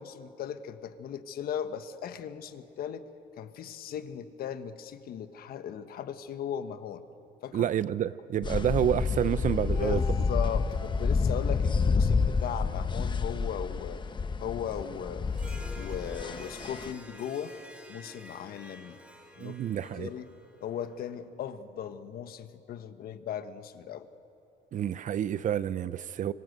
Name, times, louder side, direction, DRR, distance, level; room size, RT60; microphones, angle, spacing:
voice 1, 0.0-3.1 3.4-7.0 7.4-7.7 9.8-14.0 14.4-15.4 15.8-17.5 17.9-19.0 19.4-19.6 19.9-20.3 20.6-24.1, left 9 dB, 65° left, 10 dB, 1.4 m, -37 dB
voice 2, 7.5-10.0 19.4-20.1 24.7-26.3, right 10 dB, 50° right, 16 dB, 0.7 m, -29 dB
sound 1, 8.4-16.9, left 4 dB, 25° left, 1.0 m, -29 dB
Harp, 15.3-21.0, equal, 5° right, 4.5 m, -49 dB
26.0 x 25.5 x 8.1 m, 2.7 s
cardioid pair, 110°, 17 cm